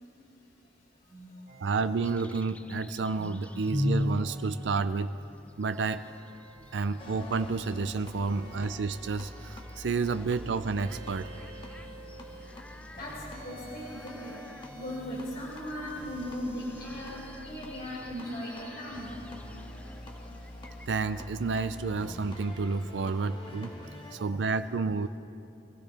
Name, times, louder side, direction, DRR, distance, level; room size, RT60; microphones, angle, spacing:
sound 1, 1.5-2.5 3.2-5.0 5.7-7.6 8.3-10.0 10.7-12.6 13.3-15.1 15.7-17.5 18.2-19.1, right 2 dB, 55° right, 2.7 m, -53 dB
voice 1, 1.6-5.2 5.6-6.1 6.7-11.3 20.9-23.7 24.1-25.1, right 4 dB, 80° right, 11 dB, 0.4 m, -30 dB
sound 2, 2.0-20.9, left 1 dB, 5° left, 0.3 m, -41 dB
sound 3, 7.0-24.2, left 1 dB, 30° left, 1.8 m, -46 dB
voice 2, 13.0-19.1 24.2-24.5, equal, 60° left, -7 dB, 5.0 m, -39 dB
24.5 x 15.5 x 3.4 m, 2.6 s
head